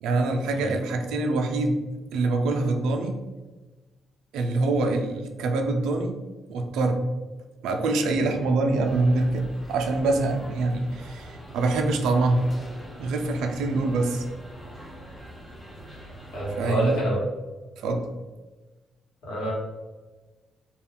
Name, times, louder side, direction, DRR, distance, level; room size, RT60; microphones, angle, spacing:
voice 1, 0.0-1.8 2.1-3.2 4.3-6.1 6.5-7.0 7.6-12.4 13.0-14.2 16.6-17.0 17.8-18.1, right 2 dB, 85° right, 4 dB, 0.3 m, -25 dB
sound 1, 8.8-17.0, equal, 10° left, 0.8 m, -43 dB
voice 2, 16.3-17.2 19.2-19.5, right 1 dB, 80° left, -5 dB, 1.2 m, -27 dB
2.3 x 2.2 x 3.4 m, 1.2 s
cardioid pair, 90°, 0 cm